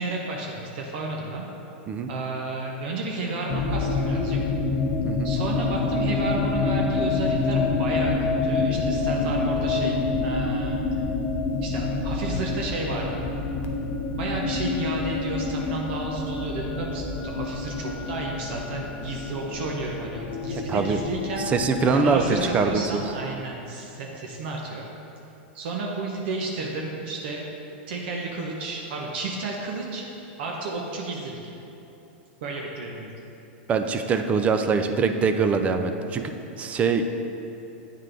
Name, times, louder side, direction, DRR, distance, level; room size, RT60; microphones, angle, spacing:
voice 1, 0.0-1.5 2.1-4.4 5.2-8.1 8.4-10.8 11.6-13.2 14.1-21.5 21.9-24.9 25.5-27.4 27.9-30.0 30.4-31.4 32.4-33.1, right 3 dB, 65° right, 0 dB, 0.7 m, -32 dB
sound 1, 3.5-23.3, left 3 dB, 35° left, 0.6 m, -27 dB
voice 2, 21.4-22.2 22.5-22.8 33.7-37.0, right 5 dB, 20° right, 7 dB, 0.3 m, -23 dB
9.0 x 3.7 x 3.3 m, 3.0 s
supercardioid pair, 135°, 6 cm